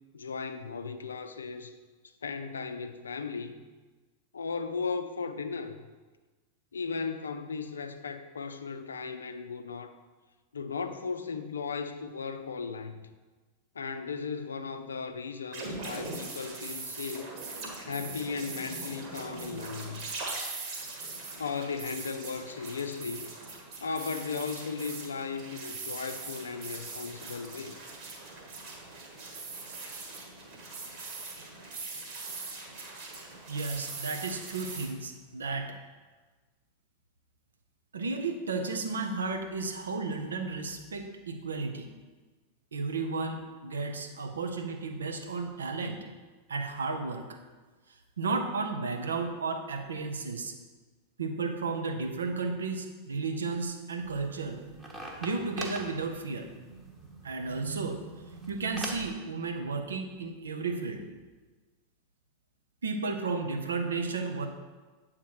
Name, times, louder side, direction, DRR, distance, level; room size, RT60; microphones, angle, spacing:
voice 1, 0.1-1.7 2.2-3.6 4.3-5.9 6.7-10.0 10.5-13.0 13.7-17.3 17.8-20.1 21.4-23.3 23.8-27.8, left 5 dB, 70° left, 9 dB, 0.4 m, -36 dB
sound 1, 15.5-34.9, right 3 dB, 45° right, 1.5 m, -41 dB
voice 2, 33.5-35.8 37.9-41.9 42.7-46.1 46.5-47.4 48.2-50.5 51.2-54.6 55.2-56.5 57.2-58.0 58.5-61.1 62.8-64.5, right 4 dB, 70° right, 5 dB, 0.7 m, -33 dB
sound 2, 54.0-59.1, right 2 dB, 15° right, 1.1 m, -42 dB
8.0 x 3.7 x 4.6 m, 1.3 s
figure-of-eight pair, 90°, 0 cm